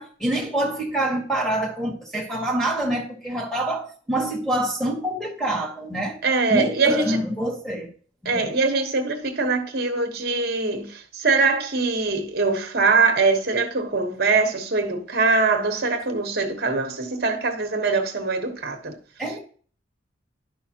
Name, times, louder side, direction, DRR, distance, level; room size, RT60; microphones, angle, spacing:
voice 1, 0.0-6.2 6.5-7.9 8.2-8.5 19.2-19.4, right 1 dB, 5° left, 1.7 m, -26 dB
voice 2, 6.2-7.2 8.2-19.0, right 4 dB, 50° right, 1.2 m, -22 dB
11.5 x 5.6 x 2.9 m
head